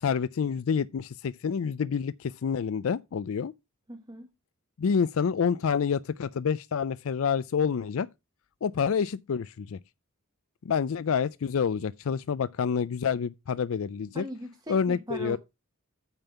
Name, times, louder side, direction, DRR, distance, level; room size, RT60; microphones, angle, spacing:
voice 1, 0.0-3.5 4.8-8.1 8.6-9.8 10.6-14.2 14.7-15.4, left 6 dB, 65° left, 0.4 m, -28 dB
voice 2, 3.9-4.3 14.1-15.4, equal, 20° right, 1.0 m, -39 dB
9.0 x 5.3 x 5.8 m
head